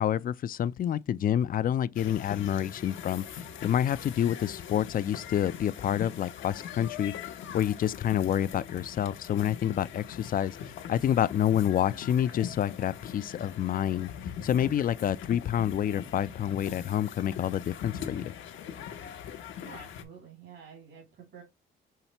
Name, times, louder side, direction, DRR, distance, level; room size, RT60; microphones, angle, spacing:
voice 1, 0.0-14.1 14.4-18.3, left 10 dB, 45° left, 0.4 m, -28 dB
sound 1, 1.9-20.0, left 9 dB, 75° left, 0.9 m, -42 dB
voice 2, 19.6-21.4, right 6 dB, 70° right, 2.4 m, -49 dB
5.7 x 3.2 x 2.9 m
cardioid pair, 90°, 20 cm